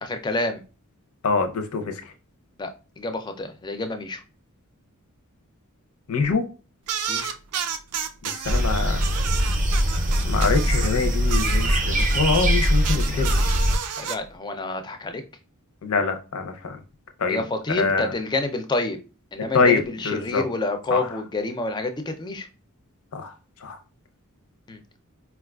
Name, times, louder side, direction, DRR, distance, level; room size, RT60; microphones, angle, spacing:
voice 1, 0.0-0.6 2.6-4.2 7.1-7.4 14.0-15.2 17.3-19.0 19.3-22.5 24.7-24.8, left 2 dB, 20° left, 7 dB, 0.4 m, -28 dB
voice 2, 1.2-1.8 6.1-6.4 8.2-9.0 10.2-13.4 15.8-16.8 17.2-17.4 17.8-18.1 19.5-19.8 20.0-20.4 20.9-21.0 23.1-23.3 23.6-23.8, left 4 dB, 70° left, 6 dB, 0.6 m, -24 dB
sound 1, 6.9-8.6 9.0-10.9 11.3-14.2, right 7 dB, 90° right, 0.4 m, -31 dB
sound 2, 8.4-13.8, equal, 35° right, 0.5 m, -22 dB
4.2 x 2.3 x 2.3 m, 0.34 s
head